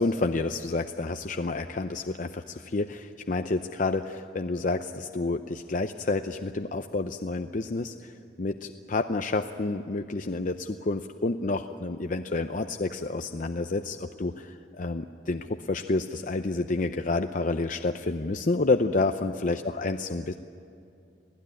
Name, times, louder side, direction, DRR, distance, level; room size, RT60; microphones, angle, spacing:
voice 1, 0.0-8.1 8.4-20.3, left 3 dB, 45° left, 6 dB, 0.6 m, -29 dB
26.0 x 16.5 x 10.0 m, 2.6 s
head